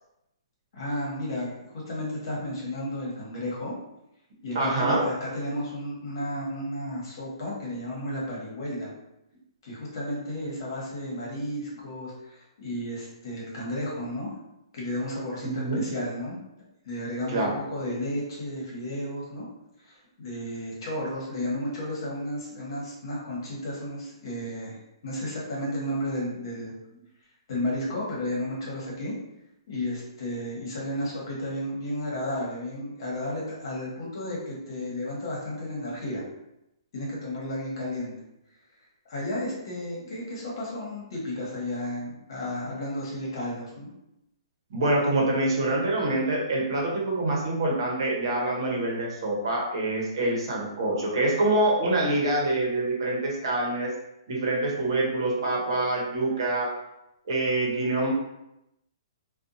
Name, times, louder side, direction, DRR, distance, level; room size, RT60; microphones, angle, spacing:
voice 1, 0.7-1.5 1.9-3.7 4.4-8.9 9.6-14.3 14.7-16.4 16.8-19.4 19.8-26.7 27.5-29.1 29.7-36.2 36.9-38.2 39.1-43.9, left 1 dB, 55° left, -4 dB, 1.1 m, -33 dB
voice 2, 4.5-5.0 15.4-15.8 17.3-17.6 44.7-54.0 54.3-56.7 57.3-58.1, right 2 dB, 60° right, -3 dB, 0.8 m, -25 dB
2.6 x 2.2 x 2.6 m, 0.87 s
hypercardioid pair, 160°, 3 cm